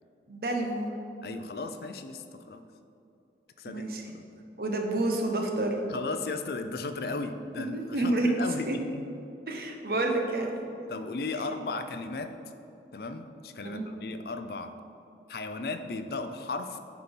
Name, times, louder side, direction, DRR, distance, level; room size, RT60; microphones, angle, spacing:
voice 1, 0.3-0.9 3.7-4.0 4.6-5.8 7.7-8.3 8.7-8.8 9.5-10.8 13.6-13.8, right 2 dB, 55° right, 2 dB, 1.0 m, -29 dB
voice 2, 1.2-2.6 3.6-3.8 4.1-4.2 5.9-9.1 9.9-10.0 10.9-12.4 12.9-14.7 15.3-16.8, left 3 dB, 60° left, 8 dB, 0.5 m, -36 dB
10.0 x 4.2 x 5.2 m, 2.7 s
head